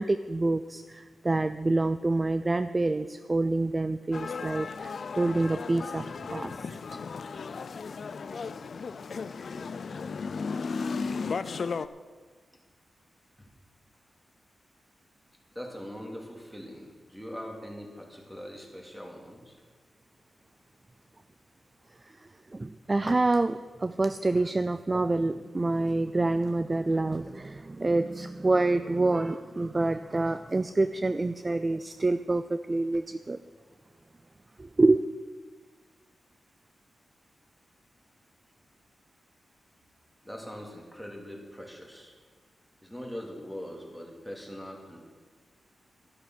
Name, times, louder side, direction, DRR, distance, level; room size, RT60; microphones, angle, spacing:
voice 1, 0.0-7.0 22.5-33.4 34.6-35.0, right 2 dB, 25° right, 0.4 m, -27 dB
sound 1, 4.1-11.9, left 5 dB, 55° left, 0.4 m, -35 dB
voice 2, 15.5-19.6 40.2-42.1 42.8-45.0, equal, ahead, 2.5 m, -42 dB
12.0 x 11.5 x 6.2 m
wide cardioid pair, 115°, 0 cm